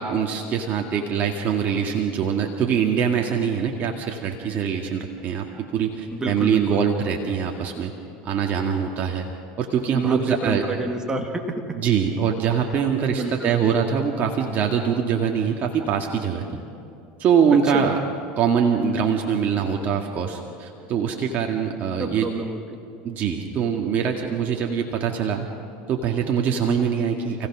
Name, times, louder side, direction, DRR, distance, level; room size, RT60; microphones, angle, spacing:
voice 1, 0.0-7.9 8.2-9.3 9.6-10.6 11.7-16.6 17.2-17.9 18.4-22.3 23.0-25.5 25.9-27.5, right 7 dB, 40° right, 1 dB, 2.0 m, -23 dB
voice 2, 6.1-6.8 9.9-11.8 13.1-13.5 17.7-18.0 22.0-22.6, right 2 dB, 15° right, 3 dB, 2.2 m, -29 dB
29.5 x 16.5 x 6.2 m, 2.7 s
hypercardioid pair, 100°, 5 cm